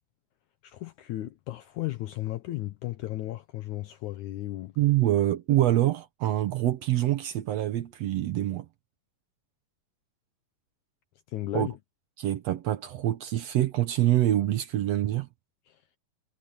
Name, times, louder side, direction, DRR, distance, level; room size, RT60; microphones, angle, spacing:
voice 1, 0.6-4.8 11.3-11.8 15.7-15.8, left 15 dB, 75° left, 1.9 m, -35 dB
voice 2, 4.8-8.7 11.5-11.7 12.2-15.3, right 13 dB, 75° right, 1.5 m, -25 dB
omnidirectional pair, 4.1 m